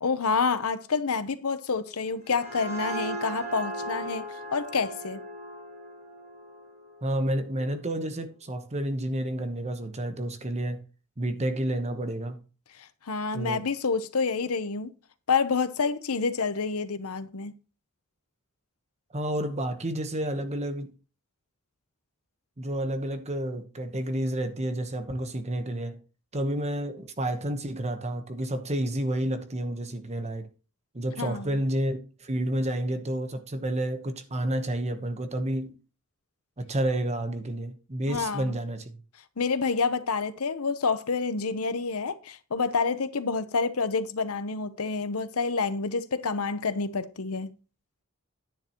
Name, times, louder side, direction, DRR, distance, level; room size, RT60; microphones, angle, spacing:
voice 1, 0.0-4.2 4.5-5.2 13.1-14.9 15.3-17.5 31.2-31.6 38.1-38.6 39.4-47.5, left 4 dB, 85° left, 0.9 m, -28 dB
sound 1, 2.0-7.5, right 1 dB, 50° right, 5.4 m, -37 dB
voice 2, 7.0-10.8 11.2-12.4 13.3-13.6 19.1-20.9 22.6-26.0 26.3-30.5 30.9-35.7 36.6-39.0, right 1 dB, 30° right, 1.1 m, -30 dB
10.0 x 9.1 x 3.0 m
head